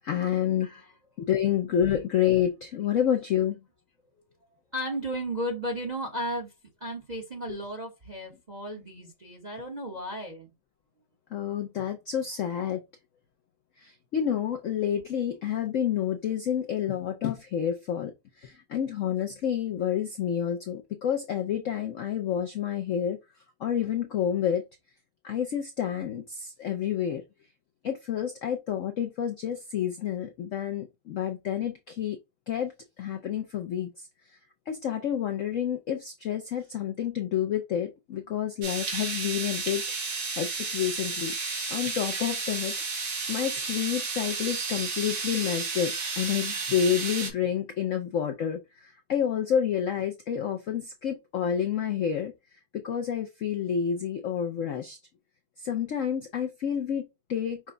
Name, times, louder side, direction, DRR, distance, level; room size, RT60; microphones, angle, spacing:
voice 1, 0.0-0.7 1.2-3.6 7.5-7.6 11.3-12.8 13.8-23.2 23.6-24.6 25.2-27.2 27.8-32.2 32.5-34.1 34.7-39.8 40.3-41.4 41.7-42.8 43.3-52.3 52.7-55.0 55.6-57.6, left 9 dB, 70° left, 0.7 m, -29 dB
voice 2, 4.7-6.5 6.8-10.5, equal, 30° right, 1.0 m, -34 dB
sound 1, 38.6-47.3, right 4 dB, 70° right, 2.0 m, -32 dB
6.0 x 2.2 x 3.7 m
omnidirectional pair, 2.0 m